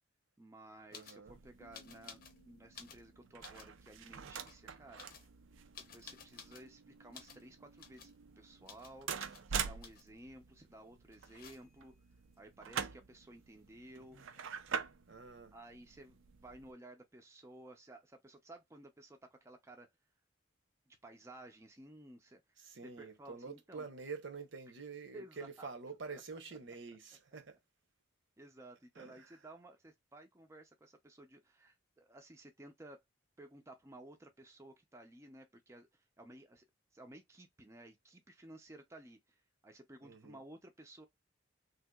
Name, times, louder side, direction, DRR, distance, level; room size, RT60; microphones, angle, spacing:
voice 1, 0.4-2.2 2.5-5.1 5.9-11.9 12.4-14.2 15.5-19.9 20.9-22.4 22.8-23.9 25.1-25.7 26.1-26.2 28.4-33.0 33.4-36.7 36.9-41.1, right 1 dB, 15° right, 0.4 m, -55 dB
sound 1, 0.9-1.2 1.7-2.4 2.7-3.7 4.3-4.6 5.0-6.7 7.1-7.5 7.8-8.2 8.7-8.9 9.2-9.4 9.8-10.2 11.1-11.9 13.7-13.8 13.9-14.6, left 6 dB, 45° left, 0.7 m, -55 dB
voice 2, 0.9-1.4 15.1-15.5 22.6-27.6 28.9-29.4 40.0-40.4, right 4 dB, 70° right, 0.9 m, -47 dB
sound 2, 1.3-16.7, right 6 dB, 85° right, 0.5 m, -46 dB
Piano, 1.6-5.0, left 2 dB, 85° left, 0.6 m, -68 dB
3.4 x 2.8 x 2.2 m
head